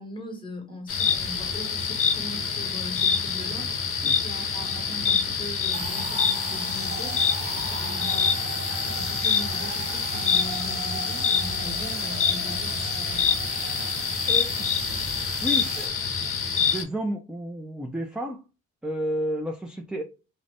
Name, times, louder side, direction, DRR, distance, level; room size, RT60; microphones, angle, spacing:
voice 1, 0.0-3.8 4.2-7.2 7.5-13.4, left 1 dB, 15° left, 1.1 m, -40 dB
sound 1, 0.9-16.8, left 6 dB, 45° left, 0.7 m, -26 dB
sound 2, 5.7-15.9, right 6 dB, 50° right, 0.6 m, -37 dB
voice 2, 14.3-14.7 15.4-15.9 16.7-18.4 18.8-20.0, equal, 5° right, 0.3 m, -31 dB
2.5 x 2.1 x 3.2 m
cardioid pair, 90°, 30 cm